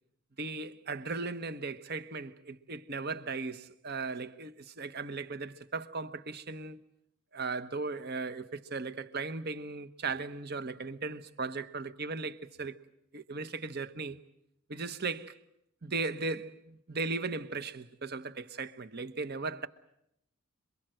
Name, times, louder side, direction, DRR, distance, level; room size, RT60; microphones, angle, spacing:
voice 1, 0.4-6.8 7.3-12.8 13.1-14.2 14.7-15.4 15.8-19.7, right 4 dB, 45° right, 1.1 m, -37 dB
27.5 x 23.5 x 7.8 m
head